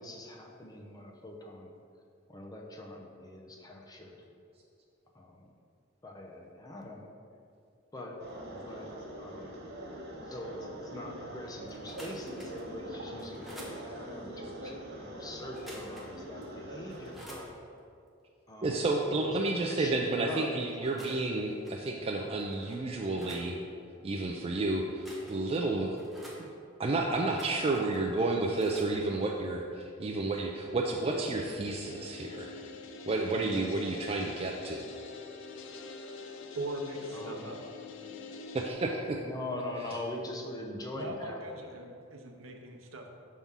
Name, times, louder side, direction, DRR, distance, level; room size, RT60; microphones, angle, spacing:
voice 1, 0.0-1.7 2.3-4.3 5.1-5.5 6.0-7.1 7.9-8.2 8.5-9.7 10.3-17.5 18.5-20.5 37.1-37.5 39.2-41.6, left 1 dB, 20° left, 0 dB, 0.6 m, -42 dB
sound 1, 8.2-17.1, right 1 dB, 55° right, 0.9 m, -43 dB
sound 2, 11.7-12.7 13.2-13.8 15.5-16.1 16.4-16.5 16.9-17.5 20.7-21.3 21.6-21.9 22.4-23.5 24.8-25.6 26.0-26.4 27.2-28.0 28.5-28.9, equal, ahead, 1.0 m, -50 dB
voice 2, 18.6-23.6 24.0-26.0 26.4-26.5 26.8-32.5 33.1-34.8 38.5-39.2, right 2 dB, 30° right, 0 dB, 0.4 m, -31 dB
sound 3, 31.6-38.7, left 4 dB, 65° left, 0.5 m, -45 dB
voice 3, 36.5-37.6 40.9-43.1, right 1 dB, 85° right, 2 dB, 0.7 m, -40 dB
6.0 x 3.6 x 5.5 m, 2.4 s
head